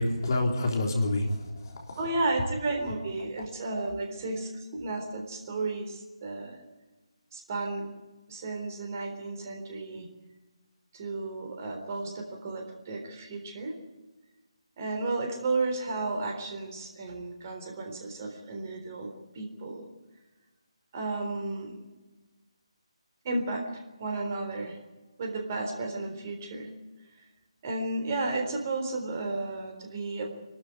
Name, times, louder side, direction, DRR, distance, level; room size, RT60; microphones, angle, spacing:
voice 1, 0.0-2.1, left 2 dB, 40° left, 1 dB, 3.6 m, -28 dB
voice 2, 2.0-6.6 7.3-7.8 8.3-10.1 10.9-13.7 14.8-19.8 20.9-21.8 23.2-24.8 25.2-26.7 27.6-30.3, right 2 dB, 30° right, 3 dB, 3.7 m, -33 dB
27.5 x 13.0 x 9.3 m, 1.2 s
figure-of-eight pair, 150°, 3 cm